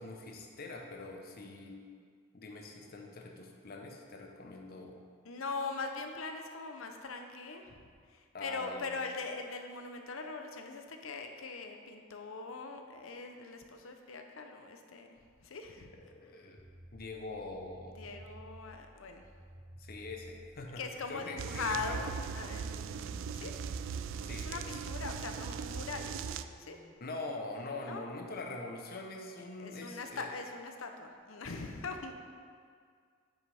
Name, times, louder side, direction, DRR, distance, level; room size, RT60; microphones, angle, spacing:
voice 1, 0.0-1.8 2.3-5.0 8.3-9.0 16.0-16.6 16.9-18.0 19.8-22.0 24.2-24.8 27.0-30.3, left 2 dB, 50° left, 2 dB, 0.8 m, -44 dB
voice 2, 5.2-7.7 8.1-15.2 15.4-15.9 18.0-19.2 20.8-23.5 24.4-26.1 26.6-26.8 27.8-28.1 29.6-32.1, left 4 dB, 75° left, 5 dB, 0.7 m, -41 dB
sound 1, 16.6-26.9, equal, 10° right, 1.0 m, -55 dB
sound 2, 21.4-26.4, right 6 dB, 65° right, 0.3 m, -39 dB
9.3 x 5.8 x 3.4 m, 2.1 s
head